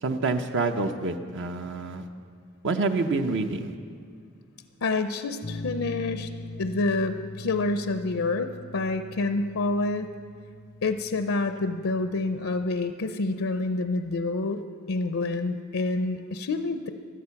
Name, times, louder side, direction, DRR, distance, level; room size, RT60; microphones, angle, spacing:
voice 1, 0.0-2.1 2.6-3.7, right 3 dB, 60° right, 6 dB, 0.7 m, -27 dB
voice 2, 4.8-6.3 6.6-10.1 10.8-14.6 14.9-16.9, left 3 dB, 75° left, 9 dB, 0.6 m, -28 dB
sound 1, 5.4-12.7, left 1 dB, 20° left, 0.4 m, -42 dB
16.5 x 12.0 x 5.8 m, 2.1 s
head